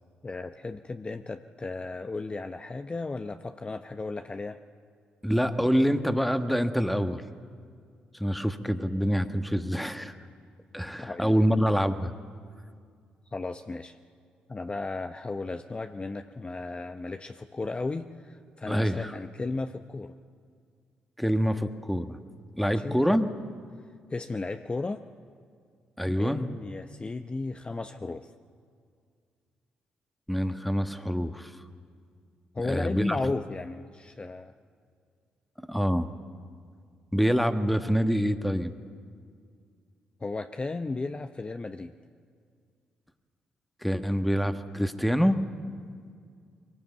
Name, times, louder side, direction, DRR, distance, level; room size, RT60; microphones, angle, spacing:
voice 1, 0.2-4.6 11.0-11.3 13.3-14.0 14.5-20.1 22.6-23.0 24.1-25.0 26.1-28.3 32.5-34.5 40.2-41.9, left 3 dB, 30° left, 8 dB, 0.7 m, -34 dB
voice 2, 5.2-7.2 8.1-10.2 10.7-12.1 18.7-19.1 21.2-22.2 22.6-23.3 26.0-26.4 30.3-31.6 32.6-33.2 35.7-36.1 37.1-38.7 43.8-45.4, equal, ahead, 8 dB, 1.4 m, -26 dB
22.5 x 18.5 x 8.2 m, 2.1 s
hypercardioid pair, 50°, 4 cm